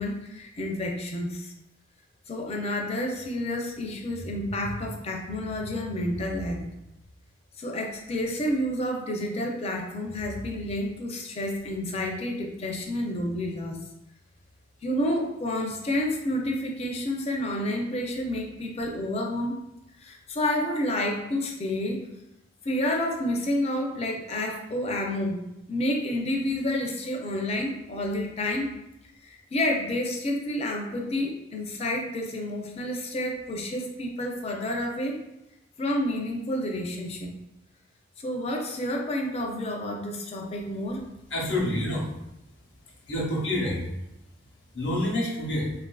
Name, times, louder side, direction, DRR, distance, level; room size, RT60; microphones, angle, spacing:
voice 1, 0.0-1.5 2.3-6.6 7.6-13.8 14.8-19.6 20.0-22.0 22.6-25.4 25.7-28.7 29.2-35.2 35.8-37.3 38.2-41.0, left 1 dB, 35° left, 1 dB, 0.4 m, -29 dB
voice 2, 41.3-42.1 43.1-43.9 44.7-45.7, left 1 dB, 65° left, -3 dB, 0.8 m, -27 dB
3.4 x 2.4 x 2.2 m, 0.87 s
head